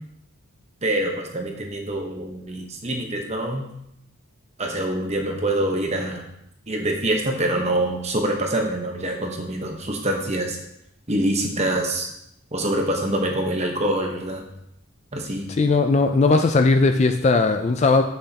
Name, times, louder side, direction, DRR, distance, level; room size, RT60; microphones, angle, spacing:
voice 1, 0.8-3.7 4.6-6.2 6.7-10.6 11.1-12.1 12.5-14.4 15.1-15.5, right 1 dB, 30° right, 1 dB, 1.0 m, -25 dB
voice 2, 15.6-18.0, left 3 dB, 30° left, 6 dB, 0.3 m, -18 dB
7.8 x 6.8 x 2.8 m, 0.79 s
head